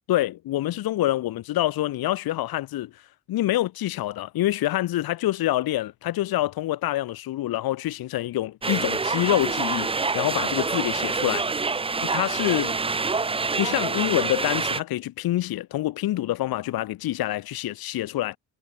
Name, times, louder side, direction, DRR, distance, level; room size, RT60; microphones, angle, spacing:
voice 1, 0.1-3.0 3.3-11.5 12.0-12.8 13.6-18.4, left 15 dB, 65° left, 0.9 m, -26 dB
sound 1, 8.6-14.8, right 4 dB, 15° right, 0.6 m, -26 dB
cardioid pair, 90°, 39 cm